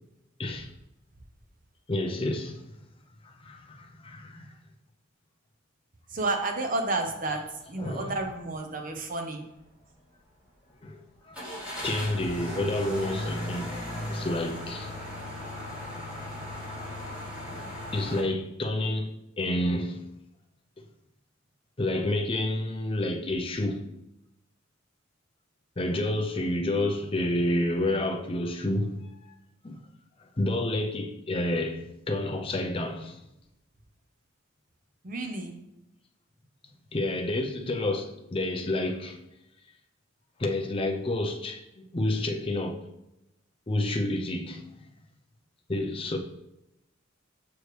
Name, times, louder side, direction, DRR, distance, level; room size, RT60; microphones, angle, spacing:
voice 1, 0.4-0.7 1.9-2.6 3.2-4.5 7.8-8.2 10.8-11.4 11.8-13.8 14.1-14.9 17.9-20.1 21.8-23.8 25.8-28.9 29.6-29.8 30.4-33.2 36.9-39.2 40.4-42.8 43.7-44.7 45.7-46.2, left 1 dB, 25° left, 0.5 m, -29 dB
voice 2, 6.1-7.4 7.7-9.4 35.0-35.6, right 2 dB, 40° right, 0.7 m, -31 dB
sound 1, 8.2-8.3 8.8-8.9 11.3-18.2, left 1 dB, 5° right, 2.3 m, -36 dB
6.4 x 4.7 x 3.2 m
head